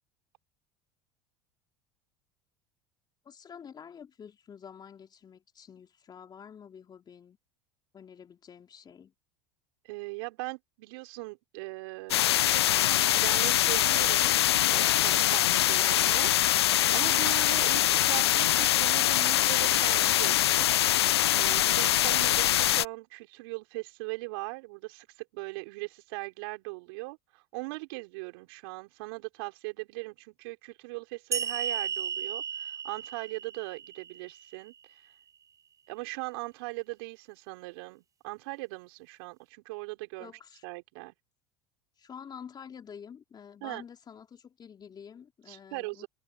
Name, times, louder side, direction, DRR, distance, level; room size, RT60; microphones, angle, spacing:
voice 1, 3.3-7.4 7.9-9.1 40.2-40.6 42.0-46.1, left 7 dB, 30° left, 3.7 m, -48 dB
voice 2, 9.9-12.2 12.5-14.3 14.7-16.3 16.6-20.7 21.4-34.7 35.9-40.3 40.6-41.1 43.6-43.8 45.5-46.1, right 26 dB, 70° right, 4.9 m, -40 dB
sound 1, 12.1-22.9, left 13 dB, 85° left, 0.5 m, -24 dB
sound 2, 31.3-34.7, right 7 dB, 25° right, 0.6 m, -34 dB
hypercardioid pair, 85°, 13 cm